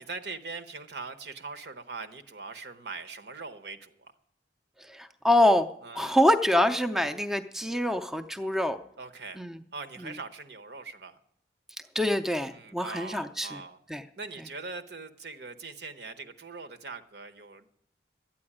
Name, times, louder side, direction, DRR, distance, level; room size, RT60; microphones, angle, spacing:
voice 1, 0.0-4.1 5.8-6.2 9.0-9.4 9.7-11.2 12.5-13.8 14.2-17.7, right 4 dB, 65° right, 9 dB, 0.9 m, -41 dB
voice 2, 4.8-5.7 5.9-8.8 9.4-9.6 10.0-10.1 11.9-13.6 13.9-14.0, left 1 dB, ahead, 7 dB, 0.4 m, -25 dB
12.0 x 8.6 x 9.9 m, 0.72 s
head